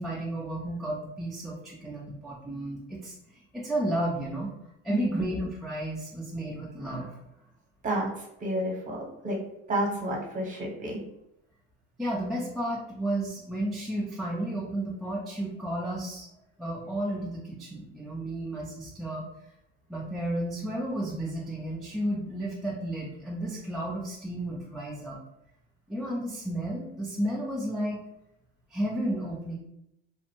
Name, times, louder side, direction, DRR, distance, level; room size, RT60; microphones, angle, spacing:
voice 1, 0.0-3.2 3.5-4.5 4.8-7.2 12.0-16.3 16.6-19.3 19.9-25.2 25.9-28.0 28.7-29.6, right 1 dB, ahead, -6 dB, 0.3 m, -32 dB
voice 2, 4.9-5.2 7.8-9.4 9.7-11.0, right 1 dB, 25° right, -2 dB, 0.9 m, -30 dB
2.5 x 2.0 x 2.9 m, 0.81 s
supercardioid pair, 115°, 31 cm